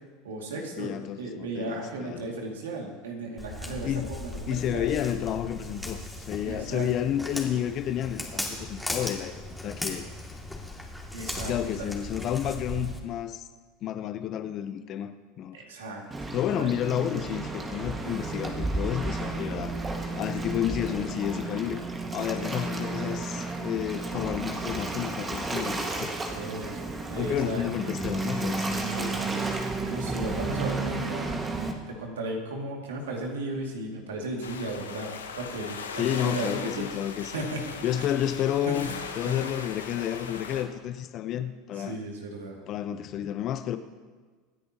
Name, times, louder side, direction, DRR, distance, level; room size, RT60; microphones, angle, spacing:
voice 1, 0.2-4.9 6.4-6.9 11.1-11.9 15.5-16.0 16.4-16.7 26.3-27.6 28.9-36.9 37.2-38.1 38.6-39.5 41.7-42.6, right 2 dB, 80° right, 0 dB, 2.4 m, -36 dB
voice 2, 0.8-2.3 3.8-4.1 4.5-6.0 6.3-10.0 11.5-13.4 13.8-15.6 16.3-19.8 20.2-21.8 22.1-26.1 27.1-29.1 36.0-37.4 37.8-38.9 39.2-42.0 42.7-43.8, left 10 dB, 50° left, 10 dB, 0.9 m, -31 dB
Walk footsteps, 3.4-13.0, left 1 dB, 5° left, 2.4 m, -37 dB
Waves surf, 16.1-31.7, right 3 dB, 20° right, 1.8 m, -32 dB
sound 1, 34.4-40.6, left 5 dB, 85° left, 1.1 m, -39 dB
25.5 x 10.0 x 3.0 m, 1.5 s
hypercardioid pair, 80°, 0 cm